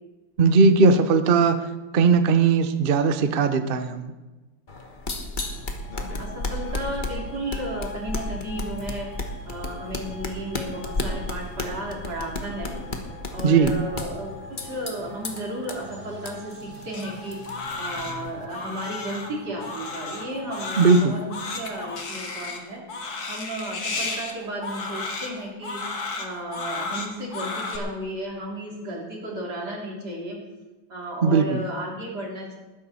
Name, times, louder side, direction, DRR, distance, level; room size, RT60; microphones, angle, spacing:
voice 1, 0.4-1.6 1.9-4.1 13.4-13.7 20.8-21.1 31.2-31.6, right 4 dB, 70° right, 9 dB, 0.5 m, -18 dB
sound 1, 4.7-18.5, left 2 dB, 30° left, 1.2 m, -34 dB
sound 2, 5.4-21.7, left 2 dB, 80° left, 4.3 m, -45 dB
voice 2, 6.2-12.8 13.3-30.4 30.9-32.6, right 1 dB, 50° right, -2 dB, 3.8 m, -34 dB
Crying sobbing, 16.9-27.8, left 3 dB, 50° left, 2.0 m, -33 dB
19.5 x 10.5 x 4.3 m, 1.2 s
omnidirectional pair, 2.2 m